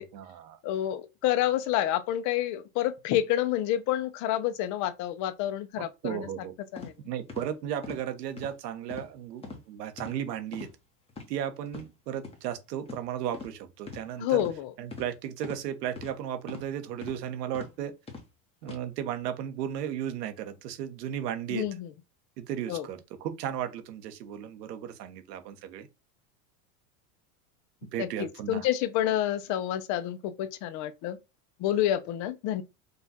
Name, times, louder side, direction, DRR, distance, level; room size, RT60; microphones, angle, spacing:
voice 1, 0.0-0.6 6.0-6.5 7.0-10.7 11.3-14.4 14.8-17.9 18.6-21.7 22.4-25.9 27.9-28.7, right 10 dB, 90° right, 1.2 m, -35 dB
voice 2, 0.6-6.3 6.7-6.9 14.2-14.7 21.5-21.9 22.7-22.9 28.0-31.2 31.6-32.6, left 12 dB, 40° left, 0.6 m, -28 dB
sound 1, 6.8-6.9 7.3-7.5 7.8-8.0 8.4-8.5 8.9-9.1 9.4-9.6 10.0-10.2 10.5-10.7 11.1-11.3 11.7-11.9 12.2-12.4 12.9-13.0 13.3-13.5 13.9-14.0 14.4-14.6 14.9-15.1 15.4-15.6 16.0-16.1 16.5-16.7 17.0-17.2 17.5-17.7 18.1-18.3 18.6-18.8, left 4 dB, 10° left, 1.0 m, -41 dB
5.4 x 2.4 x 4.1 m
supercardioid pair, 150°, 47 cm